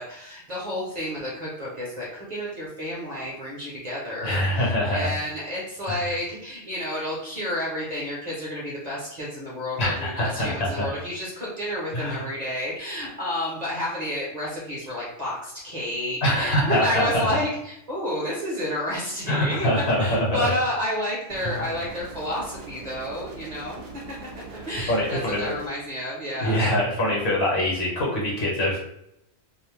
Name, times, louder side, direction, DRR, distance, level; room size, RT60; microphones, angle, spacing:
voice 1, 0.0-19.7 20.0-24.0 24.3-26.6, left 1 dB, 40° right, -6 dB, 0.7 m, -30 dB
voice 2, 4.2-5.1 5.9-6.0 9.8-10.9 11.9-12.2 16.2-17.4 19.3-20.5 21.4-21.6 24.9-25.5 26.4-28.8, left 1 dB, 60° left, -3 dB, 1.1 m, -24 dB
sound 1, 21.3-25.7, right 4 dB, 60° right, 0.4 m, -42 dB
2.5 x 2.0 x 3.1 m, 0.79 s
omnidirectional pair, 1.3 m